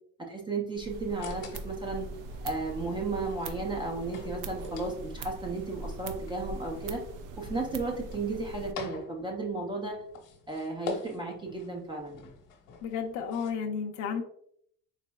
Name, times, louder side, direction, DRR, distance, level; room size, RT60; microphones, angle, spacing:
voice 1, 0.3-2.1 2.4-7.0 7.4-10.0 10.5-12.3, right 3 dB, 15° right, -1 dB, 0.4 m, -34 dB
sound 1, 0.7-8.7, right 3 dB, 70° right, 0.6 m, -41 dB
sound 2, 1.1-13.5, left 4 dB, 75° left, 1.0 m, -46 dB
voice 2, 12.8-14.2, left 6 dB, 60° left, 2 dB, 0.6 m, -32 dB
4.1 x 4.1 x 2.2 m, 0.67 s
cardioid pair, 170°, 33 cm